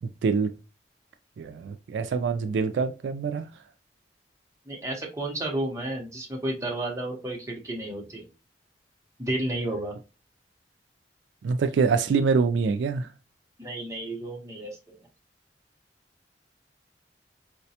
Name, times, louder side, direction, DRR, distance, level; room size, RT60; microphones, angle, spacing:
voice 1, 0.0-0.5 1.4-3.4 11.4-13.1, right 5 dB, 80° right, 0.3 m, -25 dB
voice 2, 4.7-8.2 9.2-10.0 13.6-14.8, right 1 dB, 15° right, 0.8 m, -32 dB
4.8 x 2.2 x 2.7 m
head